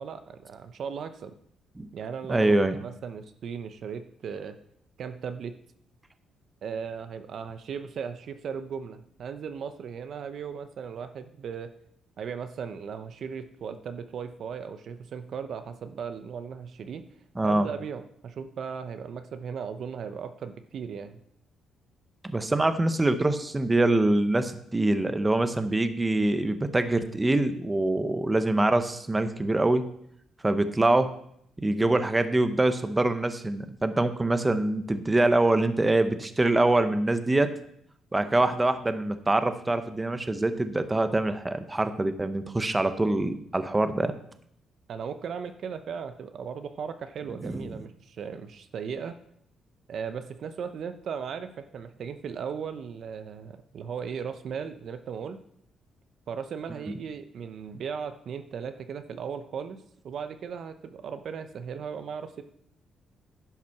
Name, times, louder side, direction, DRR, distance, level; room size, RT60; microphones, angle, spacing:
voice 1, 0.0-1.3 1.9-2.5 2.8-4.6 5.0-5.6 6.6-11.7 12.2-17.1 17.4-21.2 44.9-49.1 49.9-55.4 56.3-62.4, right 6 dB, 60° right, 9 dB, 0.7 m, -37 dB
voice 2, 2.3-2.8 17.4-17.7 22.2-29.8 30.4-31.1 31.6-37.5 38.1-44.1 47.4-47.7, right 2 dB, 15° right, 10 dB, 0.8 m, -24 dB
10.5 x 5.8 x 5.8 m, 0.69 s
cardioid pair, 90°, 0 cm